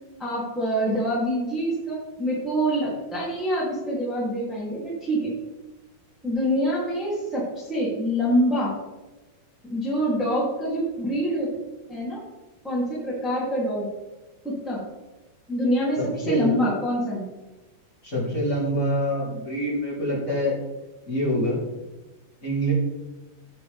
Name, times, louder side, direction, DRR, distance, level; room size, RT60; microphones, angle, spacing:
voice 1, 0.2-5.3 6.2-8.7 9.6-11.5 11.9-12.2 12.6-13.9 14.4-14.8 15.5-17.2, equal, ahead, -6 dB, 0.9 m, -25 dB
voice 2, 16.0-16.5 18.0-20.6 21.1-21.6 22.4-22.7, equal, 20° left, -6 dB, 2.8 m, -25 dB
15.5 x 6.9 x 3.5 m, 1.1 s
omnidirectional pair, 5.8 m